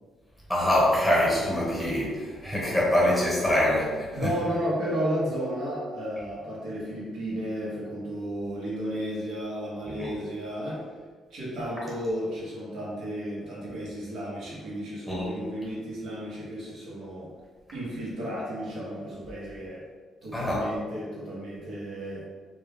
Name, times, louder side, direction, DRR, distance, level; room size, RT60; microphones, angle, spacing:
voice 1, 0.5-4.1 9.9-10.1 15.1-15.3 20.3-20.7, left 1 dB, 5° left, -6 dB, 1.1 m, -24 dB
voice 2, 4.1-10.8 11.3-17.3 17.7-19.8 20.2-22.2, equal, 75° right, -7 dB, 0.9 m, -33 dB
2.3 x 2.2 x 3.3 m, 1.5 s
cardioid pair, 90°, 0 cm